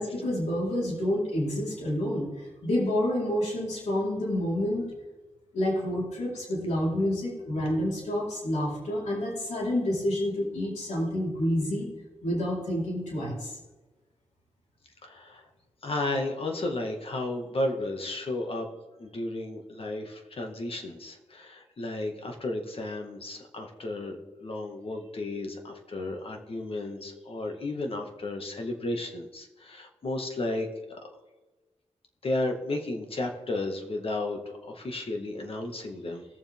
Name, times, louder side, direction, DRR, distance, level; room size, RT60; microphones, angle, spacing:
voice 1, 0.0-4.9 5.5-11.9 12.2-13.6, left 1 dB, 85° left, -6 dB, 4.7 m, -28 dB
voice 2, 15.0-15.5 15.8-18.7 19.0-31.0 32.2-36.3, left 2 dB, 55° left, 3 dB, 2.1 m, -33 dB
20.5 x 7.2 x 3.7 m, 1.2 s
cardioid pair, 75°, 12 cm